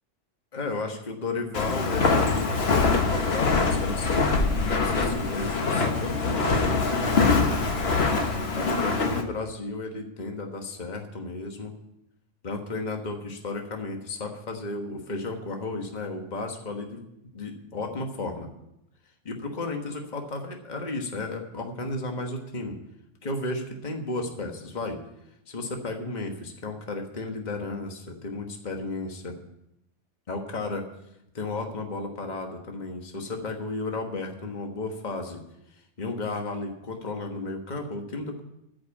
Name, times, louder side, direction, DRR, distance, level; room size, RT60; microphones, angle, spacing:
voice 1, 0.5-7.7 8.5-11.7 12.4-18.5 19.2-22.8 23.2-25.0 25.5-29.4 30.3-30.9 31.3-35.4 36.0-38.4, left 2 dB, 35° left, 3 dB, 1.4 m, -33 dB
Walk footsteps, 1.5-9.2, left 4 dB, 55° left, 1.4 m, -24 dB
13.5 x 5.3 x 8.4 m, 0.82 s
omnidirectional pair, 1.3 m